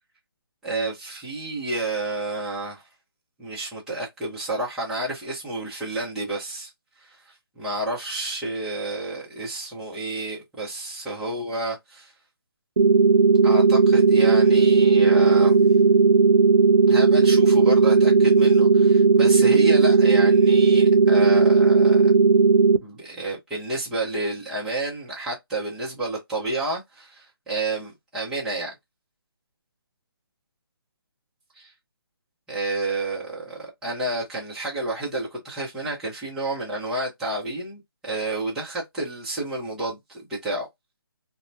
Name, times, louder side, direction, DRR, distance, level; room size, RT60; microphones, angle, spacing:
voice 1, 0.6-2.8 3.4-6.7 7.0-12.1 13.4-15.6 16.9-22.1 22.8-28.7 31.6-31.7 32.5-40.7, right 2 dB, 5° right, 0.7 m, -30 dB
sound 1, 12.8-22.8, right 4 dB, 85° right, 0.4 m, -16 dB
2.8 x 2.2 x 2.6 m
hypercardioid pair, 160°, 13 cm